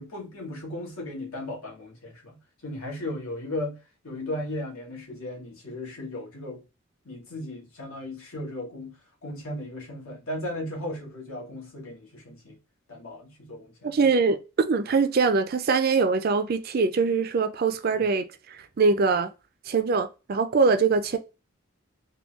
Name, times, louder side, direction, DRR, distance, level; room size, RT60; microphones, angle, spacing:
voice 1, 0.0-2.4 2.6-3.8 4.0-6.6 7.0-12.6 12.9-13.9, left 1 dB, 85° left, 1.5 m, -36 dB
voice 2, 13.8-14.4 14.7-19.3 19.7-21.2, right 4 dB, 45° right, 0.4 m, -23 dB
3.5 x 2.3 x 3.0 m
head